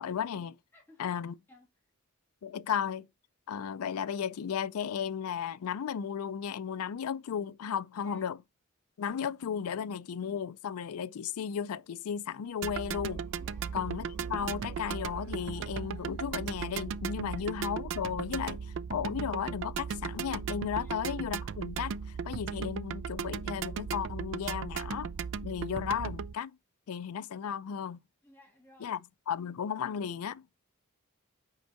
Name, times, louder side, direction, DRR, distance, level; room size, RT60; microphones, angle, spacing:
voice 1, 0.0-0.6 1.0-1.4 2.4-3.1 3.5-8.4 9.0-13.2 13.7-25.1 25.4-26.6 26.9-28.0 28.8-29.0 29.3-30.4, left 7 dB, 80° left, 0.4 m, -35 dB
voice 2, 0.7-1.1 1.5-1.7 8.0-8.2 13.4-13.8 17.2-17.4 20.7-20.9 28.2-28.9, left 1 dB, 10° left, 2.0 m, -58 dB
sound 1, 12.2-17.4, right 2 dB, 85° right, 0.8 m, -55 dB
sound 2, 12.6-26.3, right 6 dB, 55° right, 0.3 m, -37 dB
5.3 x 4.6 x 5.5 m
head